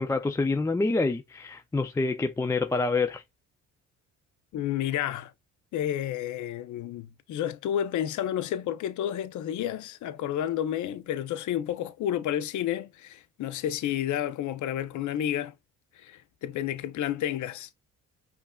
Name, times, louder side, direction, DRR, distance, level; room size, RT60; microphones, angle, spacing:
voice 1, 0.0-3.2, left 3 dB, 10° left, 0.3 m, -27 dB
voice 2, 4.5-5.3 5.7-15.5 15.9-17.7, left 11 dB, 55° left, 0.6 m, -31 dB
5.2 x 2.4 x 2.3 m
supercardioid pair, 65°, 35 cm